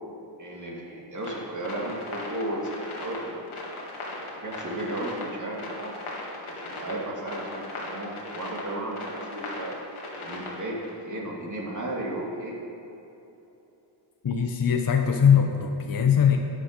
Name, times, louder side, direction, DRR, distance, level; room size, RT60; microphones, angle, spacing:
voice 1, 0.4-3.4 4.1-6.0 6.5-9.7 10.2-12.5, right 1 dB, 35° right, -3 dB, 2.4 m, -34 dB
sound 1, 1.2-10.9, left 2 dB, 75° left, 2.1 m, -38 dB
voice 2, 14.2-16.4, left 7 dB, 45° left, 4 dB, 0.8 m, -21 dB
11.5 x 7.6 x 5.2 m, 3.0 s
wide cardioid pair, 90°, 50 cm